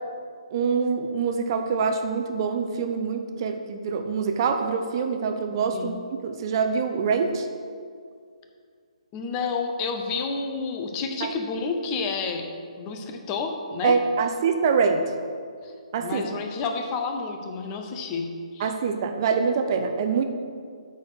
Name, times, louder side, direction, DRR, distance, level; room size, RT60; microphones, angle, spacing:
voice 1, 0.5-6.0 6.2-7.5 11.2-11.3 13.8-15.1 15.9-16.4 18.6-20.3, right 5 dB, 40° right, 6 dB, 0.7 m, -25 dB
voice 2, 9.1-12.5 12.8-14.0 15.6-15.7 16.0-18.7, left 4 dB, 25° left, 4 dB, 0.8 m, -30 dB
8.4 x 4.3 x 6.1 m, 2.2 s
figure-of-eight pair, 135°, 3 cm